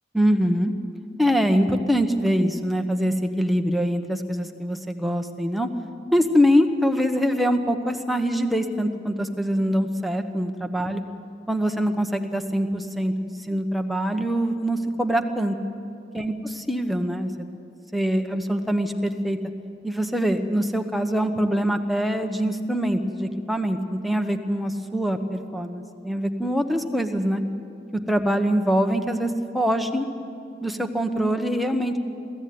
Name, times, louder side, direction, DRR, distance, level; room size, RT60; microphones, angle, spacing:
voice 1, 0.1-0.7 1.2-5.7 6.1-11.0 11.5-15.5 16.1-17.5 17.9-19.4 19.8-27.4 27.9-30.1 30.6-32.0, equal, ahead, 5 dB, 1.0 m, -24 dB
22.5 x 15.0 x 9.5 m, 2.6 s
head